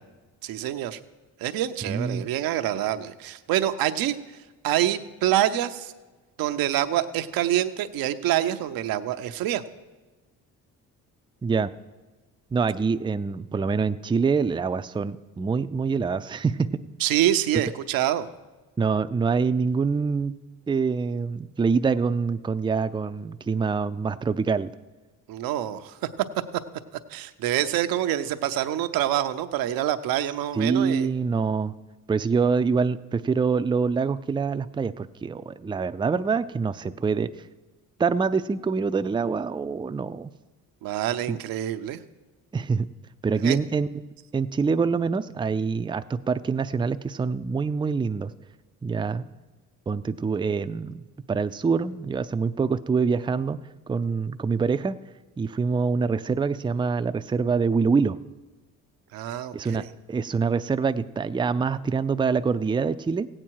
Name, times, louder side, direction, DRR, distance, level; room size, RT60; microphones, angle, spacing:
voice 1, 0.4-1.0 1.4-4.2 4.6-5.9 6.4-9.6 17.0-18.3 25.3-25.9 27.1-31.1 40.8-42.0 43.4-43.6 59.1-59.9, right 12 dB, 80° right, 9 dB, 0.7 m, -26 dB
voice 2, 1.9-2.3 11.4-11.7 12.5-16.8 18.8-20.3 20.7-24.7 30.5-31.7 32.1-37.3 38.0-40.3 41.3-41.4 42.5-42.9 43.2-43.9 44.3-48.3 48.8-49.2 49.9-51.0 51.3-53.6 53.9-55.0 55.4-58.2 59.5-63.3, right 5 dB, 15° right, 11 dB, 0.4 m, -25 dB
16.0 x 8.8 x 4.6 m, 1.2 s
supercardioid pair, 70°, 35 cm